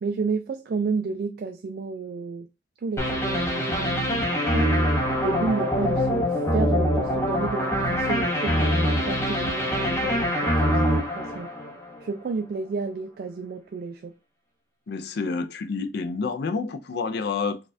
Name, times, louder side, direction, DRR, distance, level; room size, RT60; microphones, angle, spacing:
voice 1, 0.0-2.5 2.8-4.7 5.2-11.5 12.0-14.1, right 4 dB, 50° right, 0.3 m, -31 dB
sound 1, 3.0-12.0, equal, 15° left, 0.7 m, -24 dB
voice 2, 14.9-17.6, left 4 dB, 55° left, 0.4 m, -28 dB
4.0 x 2.3 x 2.6 m
head